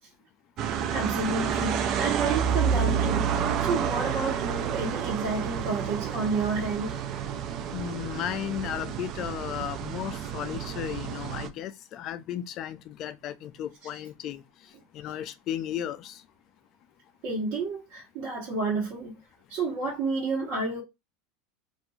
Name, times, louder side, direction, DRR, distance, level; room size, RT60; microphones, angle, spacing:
sound 1, 0.6-11.5, right 8 dB, 50° right, 0.4 m, -29 dB
voice 1, 0.7-7.0 17.2-19.2 19.5-20.8, right 3 dB, 65° right, 1.1 m, -30 dB
voice 2, 7.7-16.2, left 11 dB, 50° left, 0.4 m, -35 dB
2.5 x 2.2 x 3.0 m
hypercardioid pair, 105°, 0 cm